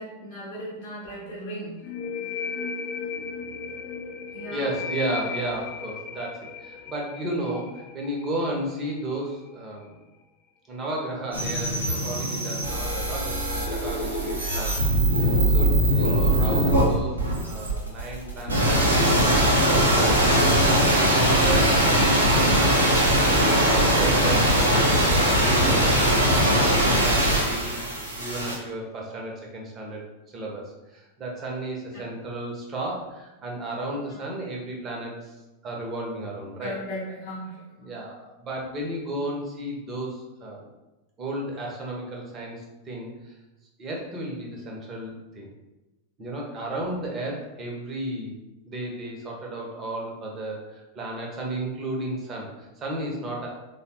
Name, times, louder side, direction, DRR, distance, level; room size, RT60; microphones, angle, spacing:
voice 1, 0.0-1.9 4.3-4.7 36.6-37.9, equal, 50° left, -6 dB, 0.8 m, -37 dB
sound 1, 1.8-9.3, left 5 dB, 30° left, 0.3 m, -36 dB
voice 2, 4.5-10.0 10.7-19.3 19.7-22.5 22.9-26.0 26.5-27.8 28.1-30.0 30.3-35.3 35.6-36.7 37.8-40.7 41.2-43.4 43.8-45.5 46.2-48.4 48.7-53.5, right 1 dB, 25° right, -2 dB, 0.8 m, -33 dB
sound 2, 11.3-28.6, right 1 dB, 75° right, 0.7 m, -21 dB
3.5 x 2.0 x 2.9 m, 1.0 s
figure-of-eight pair, 90°, 0 cm